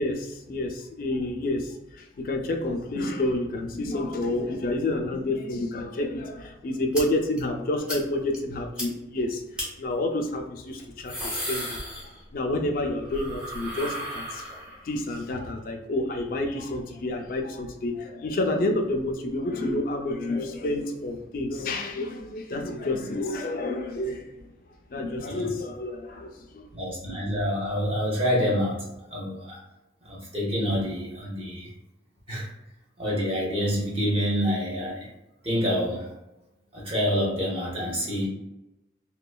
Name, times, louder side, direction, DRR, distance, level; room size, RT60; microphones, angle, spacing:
voice 1, 0.0-11.8 12.3-14.5 14.8-24.4 24.9-26.6, left 2 dB, 50° left, 4 dB, 0.3 m, -29 dB
sound 1, 6.9-7.0 7.4-7.5 7.9-8.0 8.3-8.4 8.8-8.9 9.6-9.7 10.8-12.5 12.8-14.9, equal, 5° right, 0.6 m, -34 dB
voice 2, 26.7-28.8 29.1-29.6 30.0-31.7 32.3-32.5 33.0-35.0 35.4-36.1 36.7-38.3, equal, 30° right, -5 dB, 0.8 m, -27 dB
3.0 x 2.2 x 2.2 m, 0.93 s
head